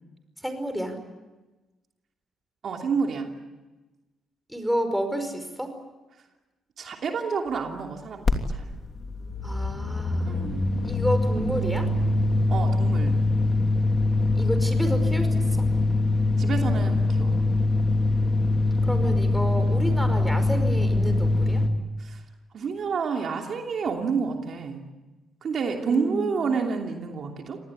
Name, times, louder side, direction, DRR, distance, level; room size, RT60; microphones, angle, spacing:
voice 1, 0.4-1.0 4.5-5.7 9.4-10.3 10.8-11.9 14.4-15.7 18.9-21.6 25.8-26.7, right 1 dB, ahead, 6 dB, 5.2 m, -30 dB
voice 2, 2.6-3.3 6.8-8.6 10.2-10.6 12.5-13.2 16.4-17.4 22.0-22.2 22.5-24.8 25.4-27.6, right 5 dB, 55° right, 2 dB, 2.9 m, -29 dB
sound 1, 8.3-8.4 8.6-21.7, left 2 dB, 40° left, 3.1 m, -23 dB
27.0 x 19.0 x 9.9 m, 1.2 s
cardioid pair, 90°, 0 cm